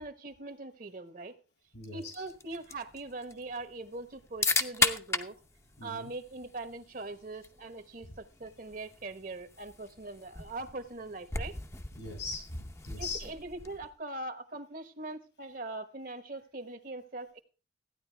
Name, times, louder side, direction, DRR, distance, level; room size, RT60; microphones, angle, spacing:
voice 1, 0.0-1.4 1.9-5.4 5.8-11.5 13.0-17.4, right 2 dB, 50° right, 10 dB, 1.1 m, -41 dB
voice 2, 1.7-2.3 5.8-6.1 8.0-8.1 11.9-13.3, left 3 dB, 75° left, 3 dB, 6.2 m, -41 dB
sound 1, 2.0-13.9, left 3 dB, 15° left, 0.7 m, -37 dB
15.0 x 9.8 x 3.4 m, 0.35 s
head